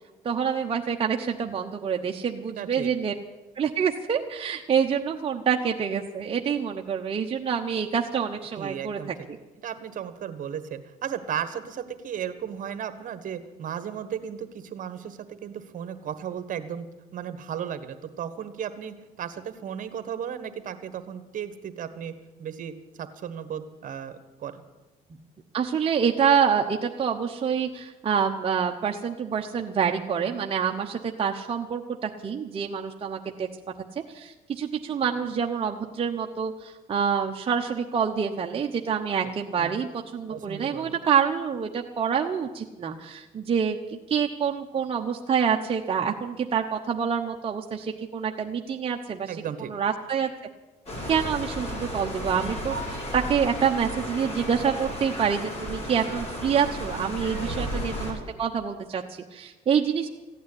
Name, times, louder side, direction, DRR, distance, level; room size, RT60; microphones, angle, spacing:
voice 1, 0.2-3.1 3.6-9.0 25.5-33.5 34.1-49.3 49.6-50.3 51.1-60.1, right 7 dB, 35° right, 1 dB, 1.0 m, -27 dB
voice 2, 2.6-2.9 8.6-9.1 9.6-16.9 17.1-22.1 22.4-24.6 39.6-39.7 40.3-41.0 49.3-49.7 57.4-57.8, right 8 dB, 50° right, 11 dB, 1.4 m, -35 dB
sound 1, 50.9-58.1, equal, 40° left, 5.2 m, -34 dB
15.5 x 9.4 x 9.8 m, 1.1 s
cardioid pair, 110°, 17 cm